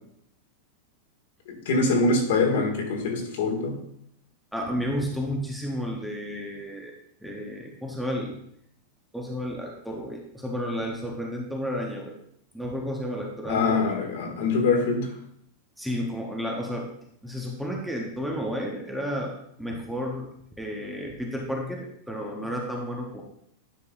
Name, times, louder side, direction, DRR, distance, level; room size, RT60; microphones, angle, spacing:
voice 1, 1.5-3.8 13.5-15.1, left 3 dB, 65° left, 1 dB, 1.6 m, -24 dB
voice 2, 4.5-6.9 7.2-8.4 9.1-12.1 12.5-13.8 15.8-16.9 17.2-20.3 20.6-23.2, equal, ahead, -1 dB, 0.6 m, -32 dB
9.8 x 5.3 x 2.4 m, 0.72 s
supercardioid pair, 175°, 0 cm